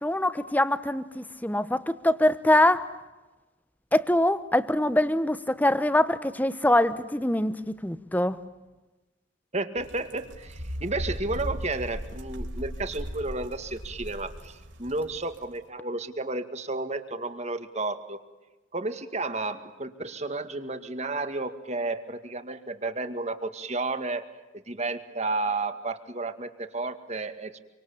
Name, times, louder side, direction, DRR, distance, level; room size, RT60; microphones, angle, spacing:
voice 1, 0.0-2.9 3.9-8.4, left 1 dB, 10° left, 13 dB, 1.0 m, -24 dB
voice 2, 9.5-18.2 18.7-24.2 24.7-27.6, right 2 dB, 35° right, 9 dB, 2.0 m, -32 dB
sound 1, 9.8-15.4, equal, 65° right, 4.2 m, -37 dB
27.0 x 25.0 x 8.6 m, 1.1 s
head